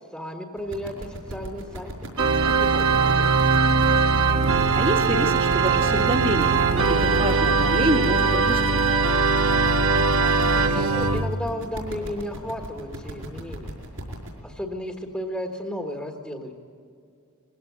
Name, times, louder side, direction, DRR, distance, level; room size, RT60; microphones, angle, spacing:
voice 1, 0.1-1.9 2.4-3.5 10.4-13.8 14.4-16.5, equal, 5° left, 1 dB, 1.4 m, -34 dB
sound 1, 0.6-14.3, equal, 90° right, 5.2 m, -38 dB
Organ, 2.2-11.3, right 4 dB, 60° right, 1.2 m, -20 dB
voice 2, 4.7-9.0, right 1 dB, 25° right, 4 dB, 1.4 m, -27 dB
21.0 x 16.5 x 8.1 m, 2.4 s
head